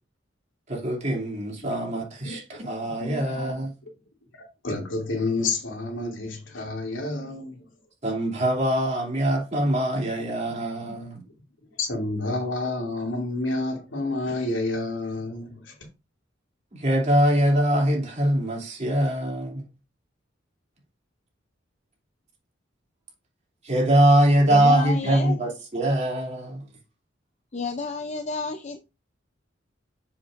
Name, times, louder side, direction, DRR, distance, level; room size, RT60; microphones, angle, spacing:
voice 1, 0.7-3.7 8.0-11.2 16.7-19.7 23.6-26.6, right 1 dB, 35° right, 2.8 m, -23 dB
voice 2, 2.8-3.2 4.4-7.6 11.8-15.7, left 2 dB, 85° left, 2.6 m, -29 dB
voice 3, 24.5-25.4 27.5-28.8, left 4 dB, 35° left, 0.5 m, -30 dB
7.4 x 7.2 x 2.5 m
head